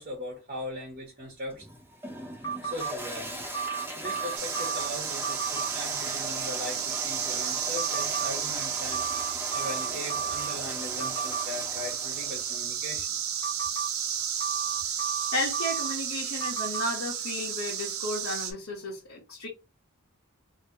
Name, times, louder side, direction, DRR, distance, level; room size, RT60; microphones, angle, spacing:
voice 1, 0.0-1.7 2.6-3.5 4.0-13.2, left 1 dB, 35° right, 1.1 m, -39 dB
Toilet flush, 1.5-12.5, equal, 10° right, 0.7 m, -39 dB
sound 1, 2.4-2.9 3.5-4.9 5.2-5.7 7.8-8.3 8.9-10.5 11.0-11.4 13.4-13.9 14.4-15.9 16.4-16.9, right 6 dB, 20° left, 0.9 m, -33 dB
sound 2, 4.4-18.5, right 8 dB, 75° right, 0.6 m, -33 dB
voice 2, 15.3-19.5, left 1 dB, 65° left, 1.2 m, -33 dB
2.9 x 2.9 x 2.9 m
head